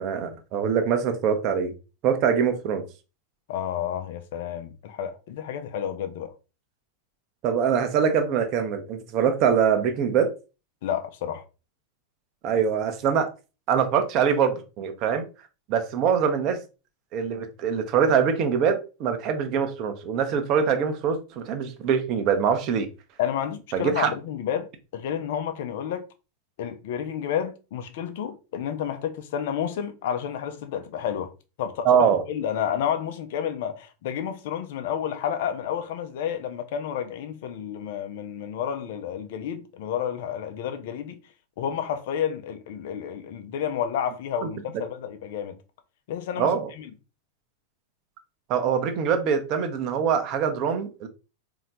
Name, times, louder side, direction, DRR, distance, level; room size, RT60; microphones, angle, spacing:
voice 1, 0.0-1.7 2.0-2.8 7.4-10.3 12.4-13.3 13.7-15.2 15.7-16.6 17.1-22.9 23.7-24.1 31.8-32.2 44.4-44.5 46.4-46.6 48.5-51.1, right 7 dB, 40° right, 1.0 m, -23 dB
voice 2, 3.5-6.3 10.8-11.4 23.2-26.0 26.6-31.3 31.6-41.2 41.6-45.6 46.1-46.5 46.8-46.9, left 9 dB, 50° left, 0.7 m, -30 dB
4.2 x 3.0 x 3.9 m
figure-of-eight pair, 90°, 0 cm